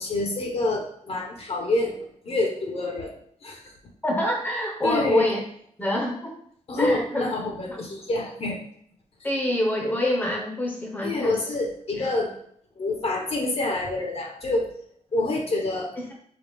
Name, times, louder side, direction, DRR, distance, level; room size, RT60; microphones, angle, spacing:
voice 1, 0.0-3.1 3.4-3.6 4.8-5.3 6.7-8.6 11.0-12.3 12.8-14.7 15.1-15.9, left 2 dB, 50° left, 1 dB, 0.9 m, -27 dB
voice 2, 4.0-5.4 5.8-6.3 6.8-7.3 7.7-7.8 9.2-11.5 11.9-12.1 16.0-16.1, left 1 dB, 15° left, 0 dB, 0.7 m, -26 dB
4.9 x 2.4 x 3.4 m, 0.66 s
wide cardioid pair, 120°, 13 cm